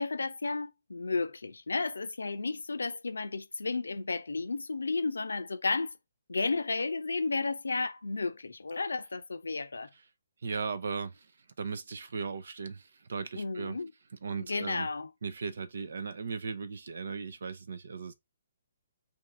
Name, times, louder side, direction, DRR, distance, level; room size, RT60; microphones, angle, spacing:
voice 1, 0.0-5.9 6.3-9.9 13.4-13.9 14.4-15.1, left 3 dB, 70° left, 0.6 m, -33 dB
voice 2, 10.4-11.3 11.6-13.8 14.2-14.9 15.2-18.1, right 5 dB, 60° right, 0.6 m, -37 dB
3.6 x 2.7 x 4.6 m
figure-of-eight pair, 135°, 0 cm